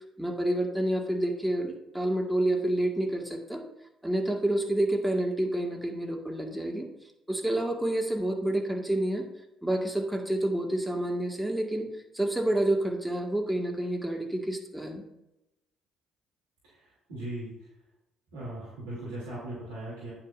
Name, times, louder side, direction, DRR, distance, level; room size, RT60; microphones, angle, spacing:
voice 1, 0.2-3.6 4.0-6.9 7.3-9.2 9.6-11.9 12.1-15.0, right 1 dB, 5° right, 1 dB, 1.9 m, -28 dB
voice 2, 17.1-17.5 18.3-20.1, right 1 dB, 75° right, -7 dB, 3.0 m, -38 dB
9.5 x 8.7 x 2.7 m, 0.86 s
figure-of-eight pair, 50°, 0 cm